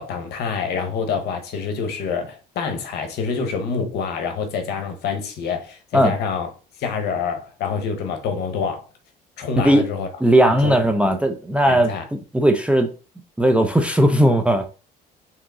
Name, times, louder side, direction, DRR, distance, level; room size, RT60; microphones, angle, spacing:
voice 1, 0.0-6.5 6.8-8.8 9.4-10.1 10.6-10.8 11.7-12.0, left 5 dB, 75° left, 0.8 m, -26 dB
voice 2, 10.2-12.9 13.4-14.7, right 1 dB, 5° right, 0.4 m, -17 dB
3.6 x 2.9 x 3.6 m
cardioid pair, 110°, 17 cm